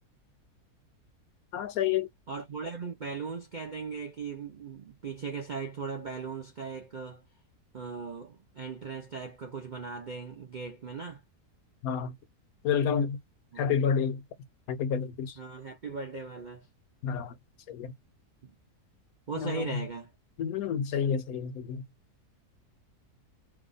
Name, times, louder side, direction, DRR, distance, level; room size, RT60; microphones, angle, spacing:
voice 1, 1.5-2.1 11.8-12.1 12.6-13.2 13.6-14.2 14.7-15.3 17.0-17.3 17.7-17.9 19.4-19.8 20.4-21.8, left 7 dB, 70° left, 1.0 m, -29 dB
voice 2, 2.3-7.2 7.7-11.2 13.5-13.7 15.4-16.7 18.4-18.5 19.3-20.1, right 5 dB, 55° right, 0.5 m, -38 dB
2.8 x 2.3 x 3.8 m
omnidirectional pair, 1.7 m